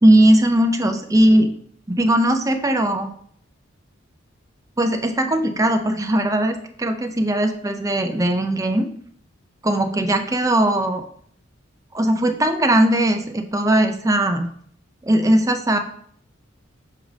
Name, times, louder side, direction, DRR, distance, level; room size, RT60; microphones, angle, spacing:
voice 1, 0.0-1.5 1.9-3.0 4.8-8.9 9.6-11.0 11.9-14.5 15.0-15.8, right 1 dB, 15° right, 6 dB, 0.5 m, -18 dB
6.6 x 3.3 x 4.8 m, 0.62 s
head